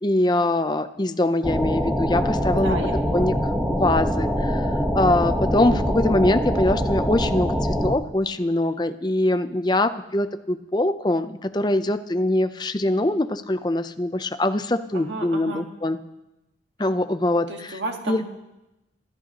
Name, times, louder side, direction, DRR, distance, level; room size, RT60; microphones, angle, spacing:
voice 1, 0.0-2.8 3.1-3.3 3.7-16.0 16.8-17.8 18.1-18.2, left 1 dB, 25° left, 10 dB, 0.6 m, -23 dB
sound 1, 1.4-7.9, equal, 5° right, 1.1 m, -24 dB
voice 2, 2.5-3.3 14.9-15.7 17.5-18.2, right 2 dB, 80° right, 2 dB, 1.7 m, -32 dB
25.5 x 13.5 x 3.0 m, 0.95 s
head